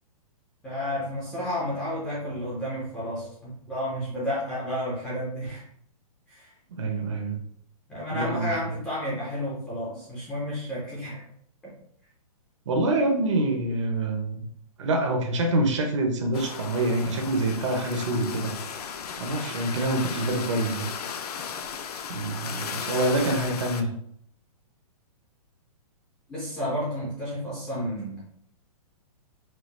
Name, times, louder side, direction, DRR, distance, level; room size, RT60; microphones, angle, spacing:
voice 1, 0.6-5.6 6.3-6.5 7.9-11.2 26.3-28.2, equal, 5° left, -8 dB, 0.4 m, -31 dB
voice 2, 6.7-7.4 8.1-8.5 12.7-14.4 14.8-18.5 19.2-20.9 22.1-23.9, right 2 dB, 50° right, 3 dB, 0.8 m, -26 dB
sound 1, 16.3-23.8, left 7 dB, 85° left, 0.5 m, -36 dB
4.6 x 2.4 x 3.2 m, 0.67 s
hypercardioid pair, 175°, 19 cm